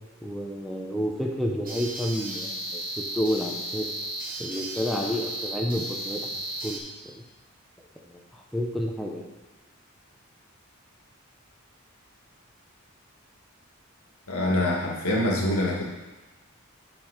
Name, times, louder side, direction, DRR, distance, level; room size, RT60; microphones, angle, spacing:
voice 1, 0.2-3.9 4.4-6.2 6.6-6.8 7.1-7.2 8.1-9.3, equal, ahead, -1 dB, 0.8 m, -30 dB
sound 1, 1.6-6.8, right 1 dB, 40° right, 1.4 m, -34 dB
voice 2, 14.3-15.8, left 1 dB, 90° left, -2 dB, 1.9 m, -25 dB
9.0 x 4.7 x 5.1 m, 1.2 s
head